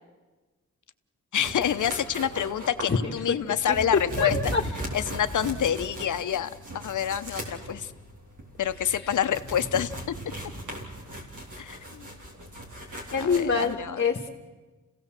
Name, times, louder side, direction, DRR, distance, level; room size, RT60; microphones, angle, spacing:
voice 1, 1.3-4.3 4.9-6.5 6.7-7.9 8.6-10.1 11.6-12.1 13.1-14.0, left 9 dB, 75° left, 11 dB, 0.9 m, -27 dB
sound 1, 1.4-13.7, right 1 dB, 80° right, 4.2 m, -38 dB
voice 2, 4.2-4.6 13.1-14.3, left 5 dB, 40° left, 0 dB, 1.6 m, -25 dB
29.0 x 16.5 x 7.5 m, 1.3 s
wide cardioid pair, 100°, 30 cm